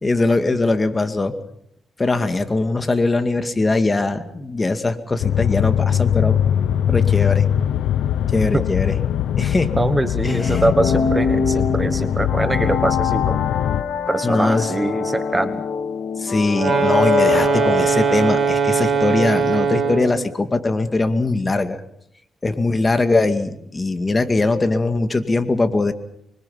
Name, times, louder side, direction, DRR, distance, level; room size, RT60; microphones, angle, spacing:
voice 1, 0.0-1.4 2.0-6.5 6.9-7.5 8.3-9.0 9.4-9.8 10.2-10.6 14.2-14.7 16.2-21.8 22.4-25.9, left 2 dB, 25° left, 8 dB, 2.2 m, -21 dB
sound 1, 5.2-13.8, left 10 dB, 85° left, 0.9 m, -21 dB
voice 2, 9.8-13.4 14.1-15.6, right 2 dB, 15° right, 11 dB, 1.2 m, -22 dB
sound 2, 10.3-18.9, left 5 dB, 70° left, 2.7 m, -24 dB
sound 3, 16.5-20.2, right 5 dB, 50° right, 6.1 m, -20 dB
25.0 x 24.5 x 5.8 m, 0.74 s
cardioid pair, 95°, 0 cm